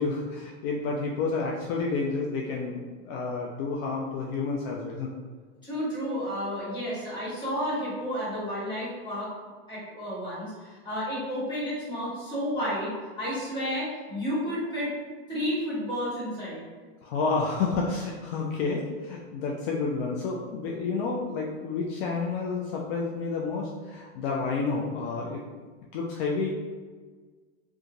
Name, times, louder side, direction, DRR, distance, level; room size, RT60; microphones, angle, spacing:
voice 1, 0.0-5.1 17.0-25.4 25.9-26.5, left 4 dB, 60° left, -2 dB, 0.5 m, -30 dB
voice 2, 5.6-9.3 9.7-14.9 15.3-16.6, equal, 15° left, -10 dB, 1.5 m, -31 dB
2.9 x 2.3 x 2.6 m, 1.5 s
supercardioid pair, 145°, 35 cm